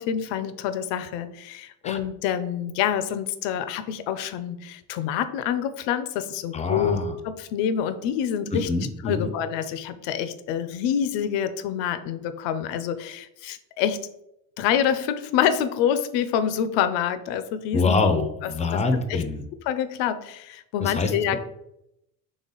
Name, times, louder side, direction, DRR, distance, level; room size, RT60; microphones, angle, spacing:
voice 1, 0.0-7.0 7.2-8.7 9.0-14.0 14.6-18.7 19.1-19.2 19.6-21.4, left 9 dB, 85° left, 11 dB, 0.6 m, -27 dB
voice 2, 6.5-7.2 8.7-9.3 17.7-19.4 20.8-21.4, left 3 dB, 15° left, 8 dB, 0.4 m, -25 dB
4.1 x 3.3 x 3.8 m, 0.82 s
cardioid pair, 125°, 43 cm